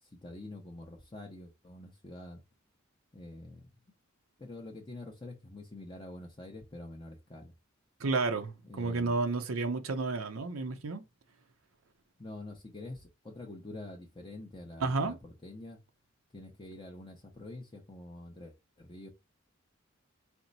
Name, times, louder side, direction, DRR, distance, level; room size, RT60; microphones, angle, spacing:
voice 1, 0.0-2.4 3.1-3.7 4.4-7.5 8.6-9.2 12.2-15.8 16.3-19.1, left 2 dB, 25° left, 0.7 m, -46 dB
voice 2, 8.0-11.0 14.8-15.2, right 3 dB, 80° right, 0.7 m, -31 dB
4.4 x 2.1 x 3.9 m
head